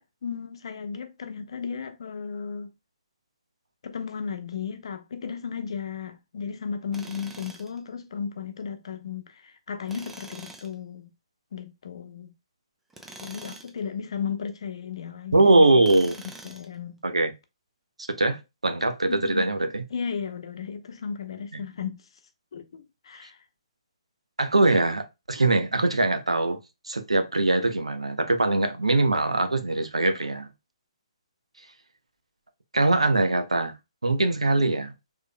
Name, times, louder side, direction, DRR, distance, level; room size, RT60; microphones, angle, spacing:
voice 1, 0.0-2.7 3.8-11.1 11.5-12.3 13.2-15.7 16.2-17.0 19.1-19.6 19.9-22.0 22.5-23.4, left 6 dB, 60° left, 0.8 m, -35 dB
Tools, 6.9-7.8 9.9-10.7 12.9-13.8 15.8-16.7, right 2 dB, 5° right, 0.6 m, -44 dB
voice 2, 15.3-16.2 17.0-17.3 18.0-19.8 21.5-21.6 24.4-26.6 26.8-30.5 32.7-33.7 34.0-34.9, right 2 dB, 90° right, 0.8 m, -22 dB
4.9 x 3.5 x 2.2 m
figure-of-eight pair, 140°, 3 cm